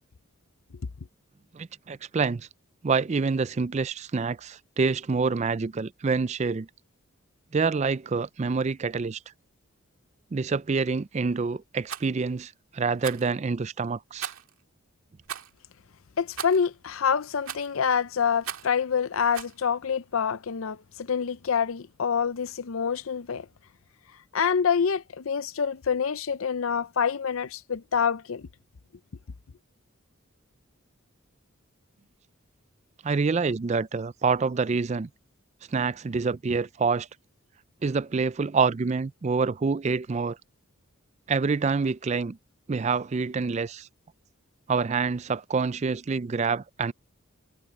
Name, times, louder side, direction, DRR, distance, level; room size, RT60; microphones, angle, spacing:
voice 1, 1.5-2.5 2.8-6.7 7.5-9.2 10.3-14.3 33.0-35.1 35.7-37.1 37.8-40.4 41.3-42.4 42.7-43.9 44.7-46.9, right 4 dB, 30° right, 0.3 m, -27 dB
Rattle, 11.8-12.1 13.0-13.3 14.2-14.5 15.2-15.5 16.4-16.7 17.4-17.8 18.4-18.8 19.3-19.6, right 8 dB, 80° right, 2.0 m, -37 dB
voice 2, 16.2-23.5 24.3-28.5, left 6 dB, 75° left, 0.6 m, -26 dB
head